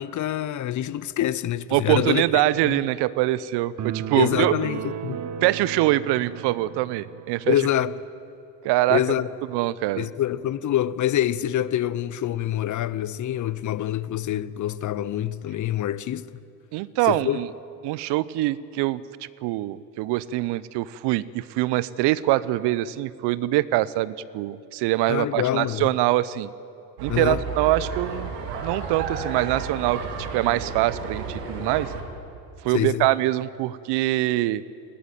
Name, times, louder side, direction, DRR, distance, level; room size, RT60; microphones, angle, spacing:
voice 1, 0.0-2.2 2.6-2.8 4.1-5.2 7.5-8.0 8.9-9.3 10.0-16.3 17.1-17.4 25.1-25.9 27.1-27.4 32.7-33.1, left 12 dB, 35° left, 0.8 m, -26 dB
voice 2, 1.7-4.6 5.4-7.6 8.6-9.0 9.5-10.1 16.7-17.5 17.8-19.0 19.4-26.5 27.0-28.4 28.6-31.9 32.6-34.6, right 16 dB, 55° right, 0.9 m, -24 dB
sound 1, 3.8-7.3, right 8 dB, 35° right, 1.3 m, -34 dB
sound 2, 27.0-32.0, right 5 dB, 75° right, 3.2 m, -32 dB
20.0 x 16.5 x 9.3 m
hypercardioid pair, 70°, 49 cm